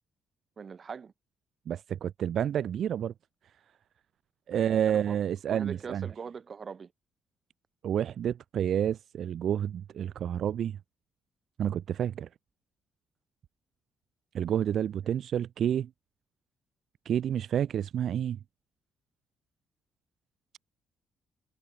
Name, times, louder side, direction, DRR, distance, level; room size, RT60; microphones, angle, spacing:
voice 1, 0.6-1.1 4.5-5.2 5.5-6.9, right 6 dB, 40° right, 2.3 m, -41 dB
voice 2, 1.7-3.1 4.5-6.1 7.8-10.8 11.6-12.3 14.3-15.9 17.0-18.4, right 9 dB, 65° right, 0.8 m, -29 dB
cardioid pair, 90°, 0 cm